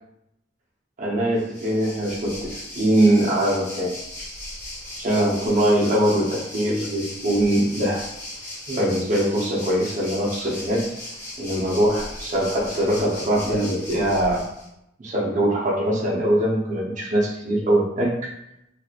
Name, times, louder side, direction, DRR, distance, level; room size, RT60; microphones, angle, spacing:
voice 1, 1.0-3.9 5.0-8.0 8.7-10.9 11.4-14.4 15.0-18.3, right 1 dB, 40° right, -3 dB, 0.8 m, -22 dB
Waves surf, 1.3-14.7, left 1 dB, 20° left, 1.3 m, -37 dB
3.3 x 3.0 x 2.4 m, 0.81 s
head